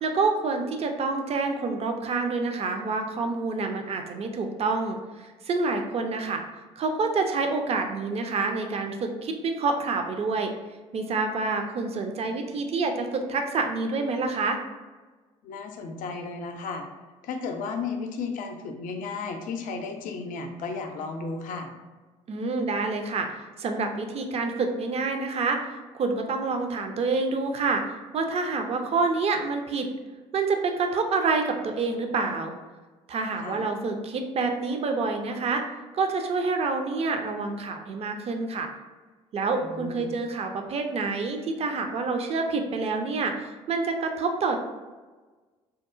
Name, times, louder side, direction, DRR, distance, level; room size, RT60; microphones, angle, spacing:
voice 1, 0.0-6.4 6.8-10.5 10.9-14.6 22.3-23.3 23.6-25.6 25.9-29.9 30.3-32.5 33.1-35.6 35.9-38.7 39.3-44.6, right 4 dB, 45° right, 5 dB, 0.4 m, -27 dB
voice 2, 15.4-16.8 17.2-21.7 33.4-33.6 39.6-40.1, left 4 dB, 65° left, 4 dB, 0.4 m, -34 dB
2.8 x 2.1 x 2.4 m, 1.3 s
hypercardioid pair, 60°, 15 cm